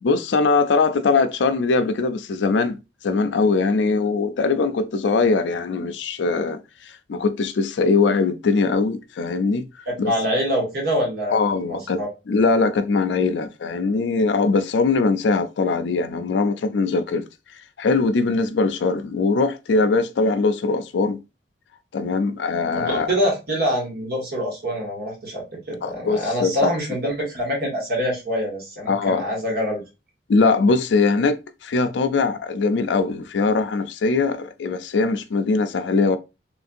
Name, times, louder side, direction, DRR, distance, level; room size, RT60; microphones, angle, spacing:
voice 1, 0.0-9.7 10.0-10.1 11.3-12.0 12.3-17.3 17.8-21.2 21.9-23.1 25.8-26.7 28.9-29.2 30.3-36.2, left 4 dB, 70° left, 0.4 m, -21 dB
voice 2, 9.9-12.1 22.7-29.8, equal, 60° right, 1.6 m, -25 dB
3.1 x 2.6 x 2.5 m
head